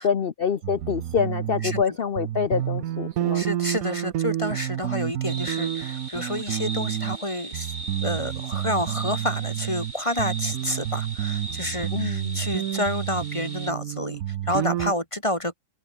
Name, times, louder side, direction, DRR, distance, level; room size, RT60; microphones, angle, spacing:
voice 1, 0.0-3.4 11.9-12.5, left 7 dB, 65° left, 0.5 m, -26 dB
sound 1, 0.6-1.8 2.2-7.2 7.5-9.9 10.2-14.9, right 12 dB, 65° right, 0.9 m, -29 dB
voice 2, 3.3-7.7 8.0-15.5, left 1 dB, 15° left, 3.2 m, -29 dB
sound 2, 5.3-13.7, right 2 dB, 20° right, 3.9 m, -38 dB
open air
omnidirectional pair, 2.1 m